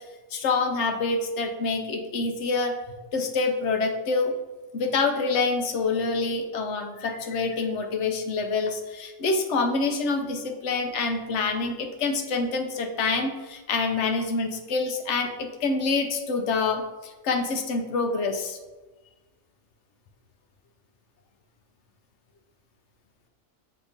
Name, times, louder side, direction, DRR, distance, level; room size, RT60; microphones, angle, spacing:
voice 1, 0.3-2.7 3.1-4.3 4.7-18.6, left 4 dB, 70° left, 5 dB, 1.0 m, -26 dB
6.5 x 2.8 x 5.1 m, 1.2 s
omnidirectional pair, 1.3 m